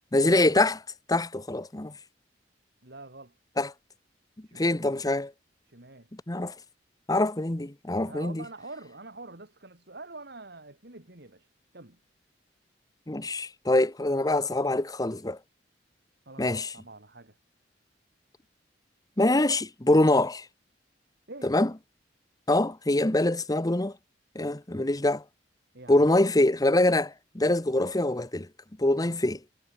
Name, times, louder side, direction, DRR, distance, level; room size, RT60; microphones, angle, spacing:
voice 1, 0.1-0.8 1.1-1.9 3.6-3.7 4.5-5.3 6.3-6.5 7.1-8.4 13.1-15.4 16.4-16.7 19.2-20.5 21.4-21.7 22.5-23.9 24.3-25.2 25.9-28.5 28.8-29.4, left 2 dB, 20° left, 1.1 m, -24 dB
voice 2, 2.8-3.3 4.5-4.8 5.7-6.1 8.0-11.5 11.7-12.0 16.3-17.4 21.3-21.5 25.7-26.1, right 2 dB, 60° right, 3.3 m, -46 dB
head